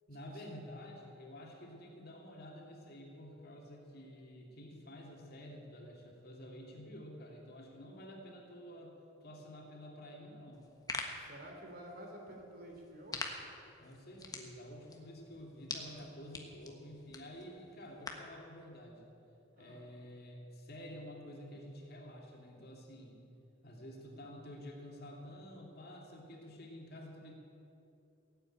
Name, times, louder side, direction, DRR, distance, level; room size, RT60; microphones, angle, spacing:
voice 1, 0.1-10.7 13.8-19.0 19.6-23.2 23.6-27.3, equal, 50° left, 0 dB, 2.6 m, -50 dB
sound 1, 10.5-18.4, left 3 dB, 20° left, 1.3 m, -46 dB
voice 2, 11.2-13.2 19.5-19.8, right 1 dB, 45° right, 1 dB, 3.1 m, -50 dB
17.0 x 8.7 x 9.1 m, 2.8 s
head